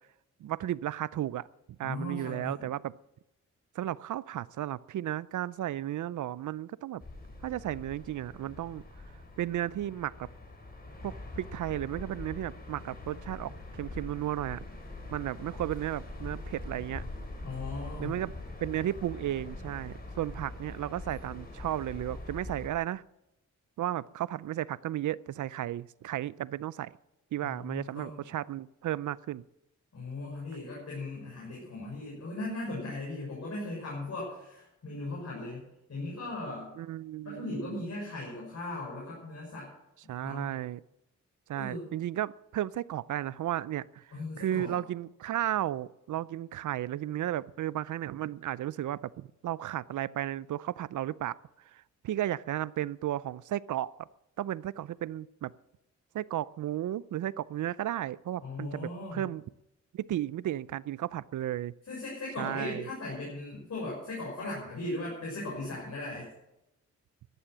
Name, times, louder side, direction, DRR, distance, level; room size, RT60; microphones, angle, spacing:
voice 1, 0.4-1.5 1.8-2.9 3.8-7.0 7.4-8.8 9.4-10.3 11.0-14.6 15.1-17.0 18.0-18.3 18.6-23.0 23.8-26.9 27.3-29.4 36.8-37.8 40.1-40.8 41.5-44.1 44.4-51.4 51.7-54.1 54.4-55.5 56.1-59.4 59.9-61.7 62.4-62.9, right 12 dB, 80° right, 20 dB, 0.5 m, -34 dB
voice 2, 1.8-2.6 17.4-18.2 27.4-28.2 29.9-36.7 37.2-39.7 40.2-40.5 41.5-41.9 44.1-44.8 58.4-59.2 61.9-66.3, left 2 dB, 60° left, -4 dB, 6.2 m, -38 dB
sound 1, 7.0-22.7, left 2 dB, 30° left, 4.2 m, -43 dB
14.5 x 11.5 x 6.1 m, 0.90 s
cardioid pair, 85°, 30 cm